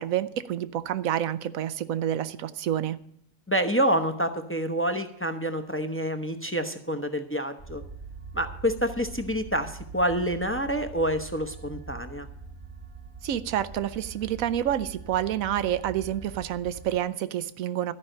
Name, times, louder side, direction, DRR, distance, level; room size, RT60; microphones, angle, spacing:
voice 1, 0.0-3.0 13.2-17.9, right 11 dB, 90° right, 14 dB, 1.1 m, -28 dB
voice 2, 3.5-7.8 8.3-12.3, equal, 15° left, 7 dB, 0.6 m, -27 dB
sound 1, 7.6-17.0, right 5 dB, 30° right, 0.9 m, -43 dB
13.0 x 5.5 x 8.8 m, 0.72 s
omnidirectional pair, 1.4 m